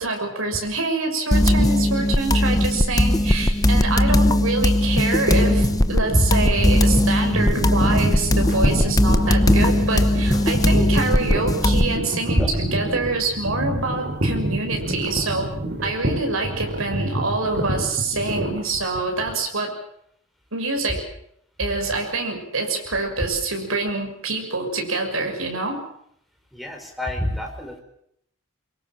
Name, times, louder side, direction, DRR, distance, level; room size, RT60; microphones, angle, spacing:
voice 1, 0.0-15.5 15.8-19.7 20.5-21.0 21.6-25.8, right 3 dB, 80° right, 3 dB, 6.4 m, -26 dB
sound 1, 1.3-12.0, left 1 dB, 20° left, 0.9 m, -19 dB
sound 2, 5.3-19.3, right 1 dB, 55° right, 6.2 m, -27 dB
voice 2, 26.6-27.8, equal, ahead, 4 dB, 4.7 m, -26 dB
25.0 x 23.0 x 7.6 m, 0.71 s
head